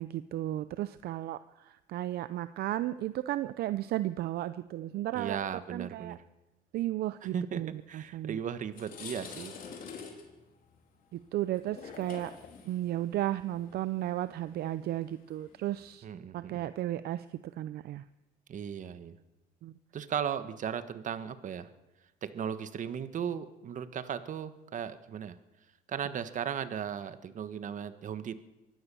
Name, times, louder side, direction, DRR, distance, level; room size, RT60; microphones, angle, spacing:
voice 1, 0.0-5.4 5.7-6.1 6.7-8.4 11.1-12.3 12.6-16.1 16.3-17.3 17.5-18.0 19.6-19.7, right 14 dB, 70° right, 14 dB, 0.6 m, -34 dB
voice 2, 5.1-6.2 7.2-9.5 16.0-16.6 18.5-19.2 19.9-21.7 22.2-25.4 25.9-28.4, right 8 dB, 50° right, 12 dB, 1.4 m, -36 dB
sound 1, 8.1-8.2 8.6-15.9, left 6 dB, 55° left, 4.0 m, -47 dB
23.5 x 16.0 x 7.0 m, 1.1 s
cardioid pair, 110°, 17 cm